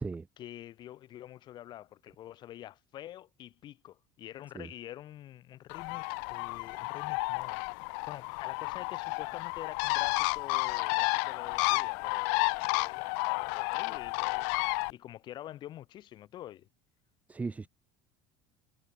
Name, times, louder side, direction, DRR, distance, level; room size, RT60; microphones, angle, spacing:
voice 1, 0.4-14.5 14.9-16.7, left 13 dB, 45° left, 5.1 m, -47 dB
Bird, 5.7-14.9, left 40 dB or more, 80° left, 0.5 m, -31 dB
voice 2, 17.3-17.7, right 4 dB, 15° right, 0.8 m, -36 dB
cardioid pair, 140°, 11 cm